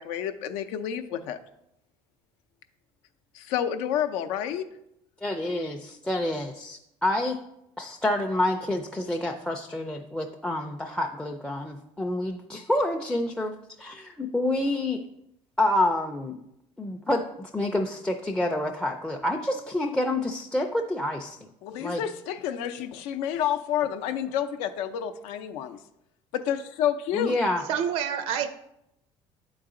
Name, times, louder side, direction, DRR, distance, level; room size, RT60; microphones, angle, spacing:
voice 1, 0.0-1.4 3.3-4.7 21.6-25.8 26.3-27.3, left 9 dB, 80° left, 9 dB, 0.6 m, -29 dB
voice 2, 5.2-7.4 7.8-15.1 15.6-16.4 16.8-21.5 21.8-22.0 27.1-27.6, left 1 dB, 5° left, 2 dB, 0.4 m, -28 dB
voice 3, 27.7-28.5, right 8 dB, 70° right, 10 dB, 0.5 m, -27 dB
8.8 x 3.9 x 3.7 m, 0.82 s
cardioid pair, 120°, 11 cm